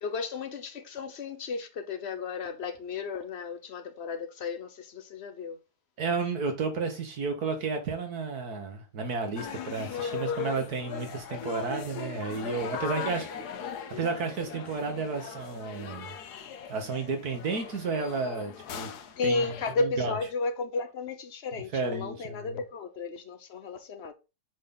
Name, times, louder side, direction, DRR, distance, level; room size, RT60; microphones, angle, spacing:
voice 1, 0.0-5.6 12.7-13.5 19.2-24.1, left 4 dB, 50° left, 1.0 m, -33 dB
voice 2, 6.0-13.3 13.9-16.1 16.7-18.9 19.2-19.5 19.8-20.2 21.7-22.6, right 4 dB, 75° right, 2.0 m, -32 dB
sound 1, 9.4-19.7, left 7 dB, 85° left, 1.4 m, -39 dB
7.4 x 4.0 x 3.9 m
omnidirectional pair, 1.7 m